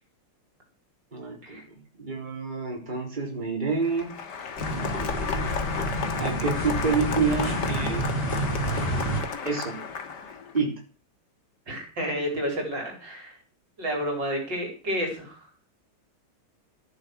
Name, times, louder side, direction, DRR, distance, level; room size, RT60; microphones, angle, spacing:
voice 1, 1.1-4.1 6.2-8.1 9.4-9.8 10.5-10.8, right 4 dB, 20° right, 0 dB, 4.0 m, -28 dB
Applause, 3.7-10.6, left 6 dB, 55° left, 2.1 m, -33 dB
sound 1, 4.6-9.2, right 1 dB, 25° left, 6.3 m, -29 dB
voice 2, 11.7-13.4 13.8-15.4, equal, 55° right, 2 dB, 4.9 m, -30 dB
13.0 x 11.0 x 6.4 m, 0.35 s
omnidirectional pair, 2.4 m